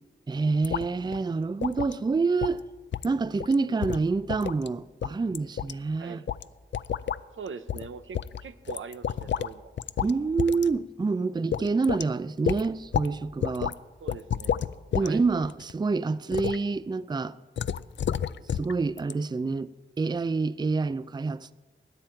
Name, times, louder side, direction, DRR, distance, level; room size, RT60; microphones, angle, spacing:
voice 1, 0.3-2.6 3.0-6.2 10.0-13.8 15.0-17.4 18.5-21.5, right 4 dB, 20° right, 0.4 m, -27 dB
sound 1, 0.6-0.9 1.1-1.2 1.6-2.0 2.4-2.6 2.9-3.1 3.4-3.5 3.8-4.7 5.0-5.7 6.3-6.4 6.7-7.2 7.7-7.9 8.1-9.5 9.8-10.1 10.4-10.7 11.0-11.1 11.5-12.1 12.5-13.1 13.4-13.7 14.1-15.1 15.4-15.7 16.3-16.6 17.6-18.7 19.0-19.1, left 9 dB, 65° left, 0.4 m, -30 dB
voice 2, 6.0-6.3 7.3-9.7 14.0-14.7 15.0-15.2, right 5 dB, 85° right, 0.7 m, -42 dB
20.5 x 8.9 x 4.5 m
cardioid pair, 60°, 20 cm